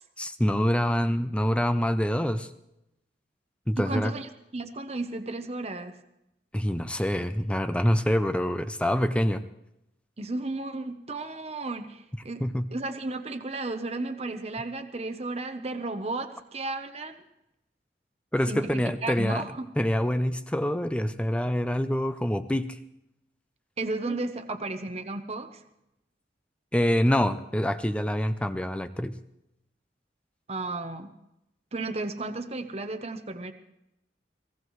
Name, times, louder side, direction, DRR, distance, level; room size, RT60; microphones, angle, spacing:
voice 1, 0.2-2.5 3.7-4.1 6.5-9.4 12.4-12.7 18.3-19.4 19.8-22.8 24.1-24.2 26.7-29.1, equal, 5° left, 10 dB, 0.5 m, -26 dB
voice 2, 3.8-6.0 10.2-12.4 12.7-17.2 18.5-19.7 23.8-25.6 30.5-31.1 31.7-33.5, right 2 dB, 35° right, 7 dB, 0.9 m, -34 dB
23.0 x 17.5 x 3.2 m, 0.86 s
head